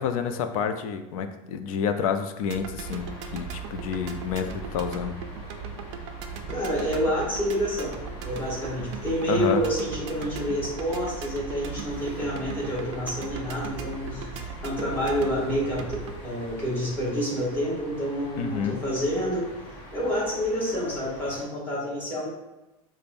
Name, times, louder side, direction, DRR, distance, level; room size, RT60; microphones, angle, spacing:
voice 1, 0.0-3.1 3.3-5.2 9.3-9.6 18.4-18.8, left 7 dB, 85° left, 8 dB, 0.4 m, -29 dB
sound 1, 2.5-16.2, right 6 dB, 55° right, 0.4 m, -38 dB
sound 2, 2.8-21.4, left 1 dB, 35° left, 0.7 m, -44 dB
voice 2, 6.5-7.9 8.2-19.5 19.9-22.3, equal, 10° left, -7 dB, 1.1 m, -28 dB
5.2 x 2.1 x 2.5 m, 0.98 s
supercardioid pair, 175°, 18 cm